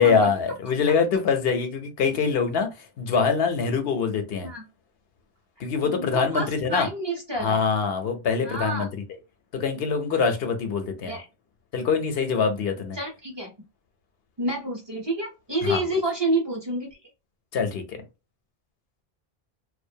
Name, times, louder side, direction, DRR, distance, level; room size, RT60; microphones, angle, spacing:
voice 1, 0.0-2.7 3.0-4.5 5.6-6.9 7.4-8.9 9.5-11.2 11.7-13.0 15.6-15.8 17.5-18.0, left 5 dB, 75° left, 0.8 m, -24 dB
voice 2, 5.8-7.6 8.4-8.9 11.0-11.3 12.9-13.5 14.4-17.0, right 1 dB, 30° right, 0.6 m, -29 dB
2.5 x 2.1 x 2.6 m
omnidirectional pair, 1.0 m